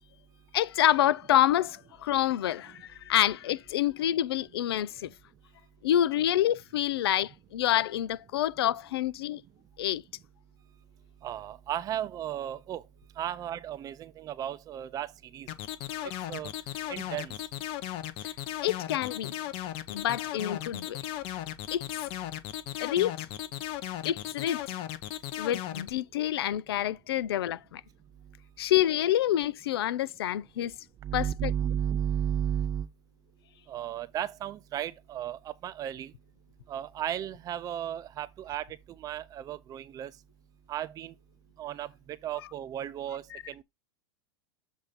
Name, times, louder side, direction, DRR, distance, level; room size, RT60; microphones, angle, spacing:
voice 1, 0.5-5.1 5.8-9.4 9.8-10.0 18.2-18.3 18.6-19.3 19.9-21.0 21.7-21.8 22.8-23.3 24.0-24.6 25.4-27.8 28.6-30.7 31.1-31.5, left 12 dB, 80° left, 0.6 m, -27 dB
voice 2, 11.2-12.8 13.2-15.5 16.0-16.5 16.9-17.3 31.0-32.9 33.7-36.1 36.7-40.1 40.7-41.1 41.6-43.6, right 10 dB, 30° right, 0.6 m, -34 dB
sound 1, 15.5-25.9, left 13 dB, 45° left, 0.9 m, -36 dB
7.4 x 2.7 x 5.2 m
hypercardioid pair, 125°, 13 cm